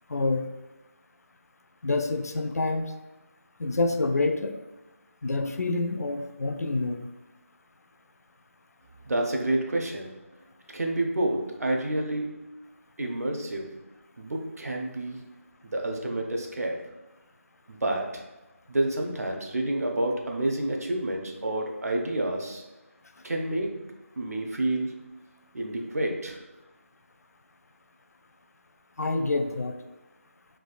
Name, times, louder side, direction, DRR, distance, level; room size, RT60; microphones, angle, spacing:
voice 1, 0.1-0.5 1.8-2.9 3.6-4.6 5.2-7.1 29.0-29.8, left 3 dB, 90° left, 6 dB, 0.4 m, -27 dB
voice 2, 9.0-10.1 10.7-12.4 13.0-13.7 14.2-15.2 15.6-16.8 17.7-18.2 18.7-22.6 23.2-23.8 24.2-25.0 25.5-26.4, right 1 dB, 80° right, 1 dB, 0.6 m, -29 dB
3.3 x 2.5 x 2.2 m, 1.1 s
figure-of-eight pair, 175°, 8 cm